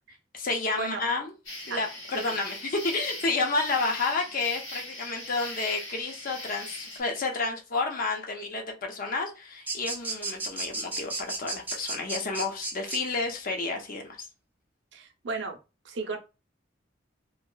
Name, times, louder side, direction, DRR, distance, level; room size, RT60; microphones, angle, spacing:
voice 1, 0.3-1.3 1.7-14.3, left 3 dB, 45° left, 0.7 m, -30 dB
sound 1, 1.5-7.0, left 1 dB, 90° left, 1.1 m, -40 dB
sound 2, 9.7-13.0, right 2 dB, 10° right, 0.5 m, -33 dB
voice 2, 14.9-15.6 15.8-16.2, right 4 dB, 65° right, 0.6 m, -34 dB
2.9 x 2.8 x 2.3 m
head